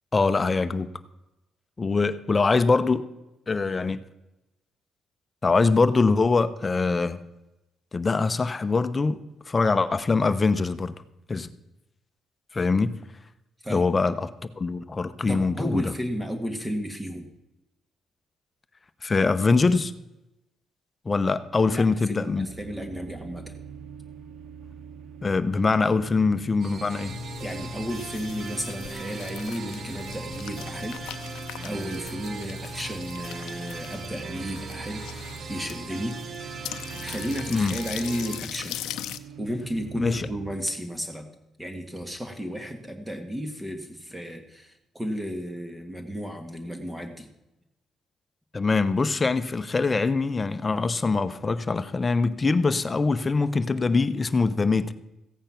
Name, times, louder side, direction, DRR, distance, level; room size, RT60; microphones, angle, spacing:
voice 1, 0.1-0.9 1.8-3.0 3.5-4.0 5.4-7.2 7.9-10.9 11.3-11.5 12.5-12.9 13.7-14.3 14.6-15.9 19.0-19.9 21.0-22.5 25.2-27.2 37.5-37.8 40.0-40.3 48.5-54.9, left 4 dB, 30° left, 13 dB, 0.8 m, -23 dB
voice 2, 13.6-13.9 15.3-17.3 21.7-23.5 27.4-31.0 31.6-36.2 36.7-38.8 39.4-41.3 41.6-47.3, equal, 10° right, 6 dB, 1.8 m, -33 dB
sound 1, 22.4-40.6, right 7 dB, 75° right, 0.7 m, -44 dB
sound 2, 26.6-38.4, right 5 dB, 55° right, 1.0 m, -40 dB
sound 3, 27.0-39.2, left 8 dB, 90° left, 0.6 m, -39 dB
15.0 x 8.9 x 5.8 m, 0.95 s
cardioid pair, 90°, 0 cm